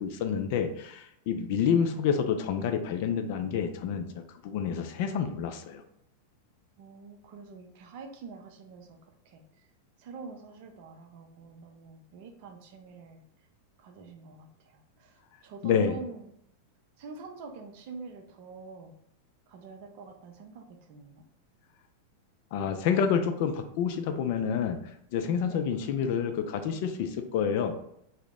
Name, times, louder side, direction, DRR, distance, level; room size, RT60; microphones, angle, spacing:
voice 1, 0.0-5.8 15.6-15.9 22.5-24.8 25.1-27.7, left 7 dB, 50° left, 7 dB, 0.3 m, -28 dB
voice 2, 1.5-2.1 6.8-9.7 10.0-13.2 13.8-16.3 17.0-18.9 19.5-21.2 25.4-25.7, right 4 dB, 50° right, 5 dB, 0.5 m, -47 dB
2.7 x 2.0 x 3.5 m, 0.74 s
figure-of-eight pair, 90°, 0 cm